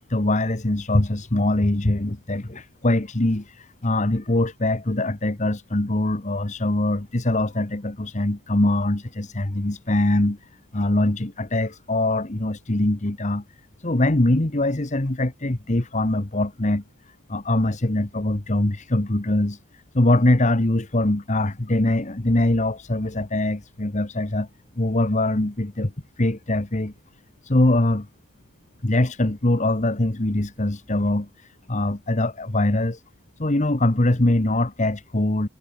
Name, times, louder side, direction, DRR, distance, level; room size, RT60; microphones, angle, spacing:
voice 1, 0.0-10.4 10.7-13.4 13.8-16.8 17.3-19.6 19.9-24.5 24.8-25.9 26.2-26.9 27.4-28.1 28.8-31.3 31.7-33.0 33.4-35.5, left 1 dB, 35° left, 1.2 m, -22 dB
head